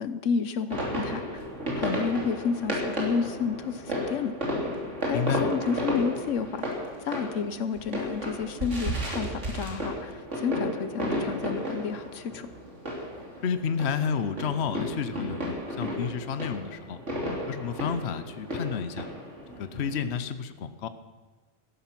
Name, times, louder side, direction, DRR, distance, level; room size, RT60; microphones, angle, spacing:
voice 1, 0.0-1.4 1.7-4.3 5.0-6.6 7.0-12.5, left 6 dB, 85° left, 12 dB, 1.2 m, -30 dB
sound 1, 0.7-20.2, equal, 75° right, 3.5 m, -33 dB
voice 2, 5.1-5.5 13.4-17.0 17.5-19.1 19.6-20.9, left 7 dB, 60° left, 12 dB, 1.0 m, -30 dB
17.5 x 14.0 x 6.0 m, 1.3 s
omnidirectional pair, 1.3 m